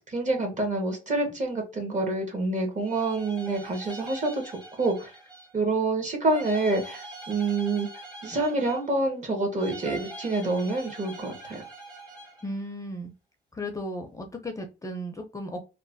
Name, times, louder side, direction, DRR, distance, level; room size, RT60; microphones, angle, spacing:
voice 1, 0.1-4.4 4.8-5.1 5.5-7.9 8.2-11.6, right 2 dB, 40° right, 3 dB, 1.2 m, -27 dB
sound 1, 2.8-5.6 6.3-9.1 9.6-12.5, right 2 dB, 20° right, 1.0 m, -43 dB
voice 2, 12.4-13.1 13.5-15.6, equal, 15° left, 4 dB, 0.5 m, -35 dB
3.0 x 2.1 x 2.6 m, 0.29 s
cardioid pair, 90°, 20 cm